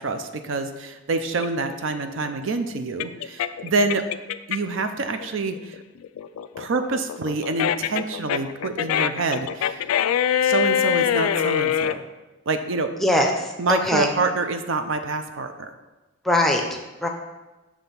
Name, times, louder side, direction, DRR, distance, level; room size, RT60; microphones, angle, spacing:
voice 1, 0.0-4.0 4.5-5.8 6.6-9.8 10.4-12.0 12.5-12.9 13.6-15.7, right 3 dB, 60° right, 7 dB, 0.5 m, -26 dB
sound 1, 1.4-4.8 5.2-12.0, left 9 dB, 85° left, 0.3 m, -24 dB
voice 2, 13.0-14.1 16.2-17.1, left 1 dB, ahead, 1 dB, 0.6 m, -22 dB
7.3 x 3.4 x 5.7 m, 1.1 s
head